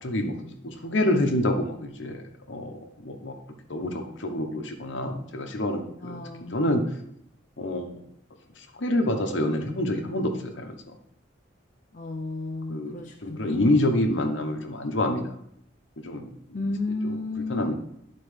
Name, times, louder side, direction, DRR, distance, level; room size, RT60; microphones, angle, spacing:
voice 1, 0.0-3.3 3.7-6.2 6.5-6.8 7.6-8.0 8.6-10.7 12.7-13.0 13.2-15.3 16.0-16.3 16.7-16.8 17.0-17.1 17.5-17.7, left 1 dB, 65° left, 4 dB, 1.0 m, -27 dB
voice 2, 6.0-6.6 11.9-13.6 16.5-17.7, left 2 dB, 40° left, 0 dB, 0.5 m, -33 dB
11.0 x 4.3 x 3.3 m, 0.72 s
head